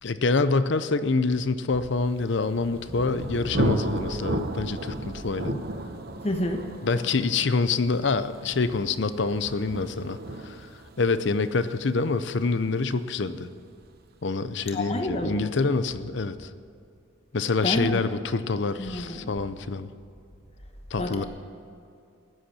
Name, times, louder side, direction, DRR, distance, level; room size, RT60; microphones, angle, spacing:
voice 1, 0.0-5.6 6.8-10.7 11.0-13.5 14.2-16.5 17.3-19.9 20.9-21.2, left 4 dB, 60° left, 13 dB, 0.6 m, -26 dB
Thunder, 2.2-13.8, right 1 dB, 50° right, 0.9 m, -34 dB
voice 2, 6.2-6.6 14.7-15.4 17.6-18.0 18.8-19.3 21.0-21.3, left 1 dB, 30° left, 4 dB, 1.1 m, -29 dB
15.5 x 7.9 x 8.5 m, 2.4 s
head